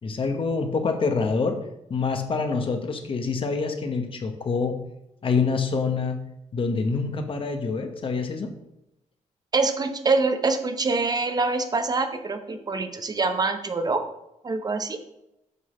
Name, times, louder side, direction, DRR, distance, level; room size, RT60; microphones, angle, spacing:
voice 1, 0.0-1.6 1.9-4.8 5.2-6.2 6.5-8.5, left 4 dB, 45° left, 5 dB, 1.1 m, -26 dB
voice 2, 9.5-14.0 14.4-15.0, right 3 dB, 30° right, 8 dB, 0.8 m, -25 dB
8.2 x 3.9 x 6.3 m, 0.86 s
wide cardioid pair, 140°, 13 cm